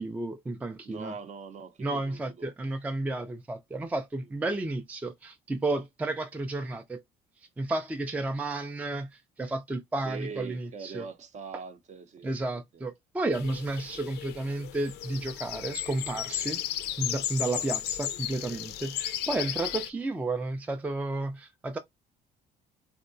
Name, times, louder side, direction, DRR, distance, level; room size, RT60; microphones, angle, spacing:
voice 1, 0.0-1.1 1.8-7.0 7.6-11.1 12.2-16.6 17.0-21.8, right 2 dB, 10° right, 0.4 m, -32 dB
voice 2, 0.8-2.5 4.2-4.3 10.0-12.8, right 5 dB, 45° right, 0.6 m, -42 dB
sound 1, 13.3-19.9, left 12 dB, 80° left, 0.4 m, -35 dB
3.6 x 2.1 x 2.6 m
cardioid pair, 110°, 17 cm